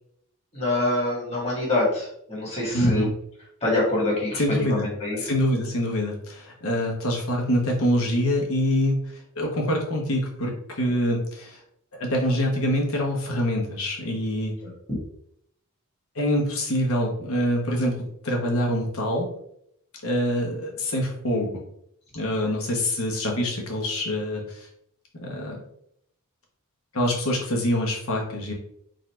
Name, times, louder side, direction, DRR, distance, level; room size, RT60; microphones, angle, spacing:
voice 1, 0.5-3.1 3.6-4.4 4.7-5.3 10.8-10.9 14.6-14.7 22.4-22.5, left 2 dB, 30° left, -4 dB, 1.8 m, -25 dB
voice 2, 2.7-3.1 4.4-4.9 5.1-9.0 9.4-10.5 10.8-11.6 12.0-14.5 16.1-17.9 18.2-19.3 20.0-21.5 22.1-24.7 25.2-25.6 26.9-28.5, equal, 70° left, -1 dB, 1.2 m, -25 dB
4.0 x 2.6 x 4.4 m, 0.72 s
head